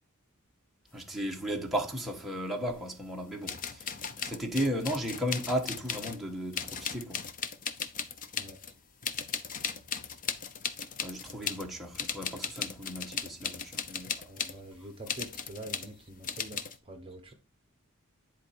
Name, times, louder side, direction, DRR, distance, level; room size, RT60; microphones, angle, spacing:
voice 1, 0.9-3.8 4.2-7.2 11.0-14.2, equal, ahead, 1.4 m, -35 dB
sound 1, 2.7-2.8 3.4-6.2 6.5-8.7 9.0-11.7 11.9-14.6 15.1-15.9 16.2-16.8, left 6 dB, 35° left, 0.7 m, -37 dB
voice 2, 14.3-17.3, right 1 dB, 25° right, 1.1 m, -45 dB
10.5 x 4.5 x 4.4 m
head